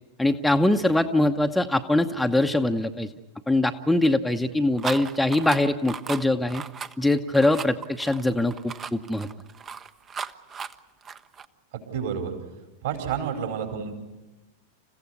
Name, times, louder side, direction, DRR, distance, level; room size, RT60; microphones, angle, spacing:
voice 1, 0.2-3.1 3.5-6.6 7.0-9.3, left 1 dB, 5° left, 5 dB, 0.9 m, -23 dB
sound 1, 4.8-11.4, right 6 dB, 25° right, 0.8 m, -36 dB
voice 2, 11.7-12.3 12.8-13.9, right 7 dB, 60° right, 4 dB, 4.8 m, -29 dB
28.5 x 15.5 x 9.7 m, 1.1 s
figure-of-eight pair, 90°, 0 cm